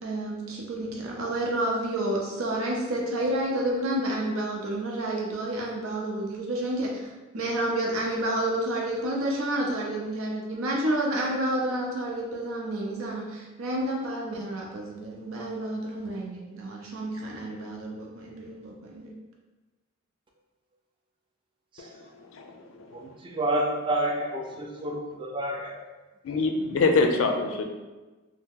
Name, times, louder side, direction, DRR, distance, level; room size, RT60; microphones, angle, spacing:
voice 1, 0.0-19.1, right 1 dB, 90° right, -2 dB, 0.7 m, -30 dB
voice 2, 21.8-23.0 24.1-24.3 26.2-27.6, left 3 dB, 75° left, 4 dB, 0.4 m, -26 dB
voice 3, 22.9-25.8, right 1 dB, 25° right, 1 dB, 0.3 m, -29 dB
2.8 x 2.0 x 3.6 m, 1.2 s
head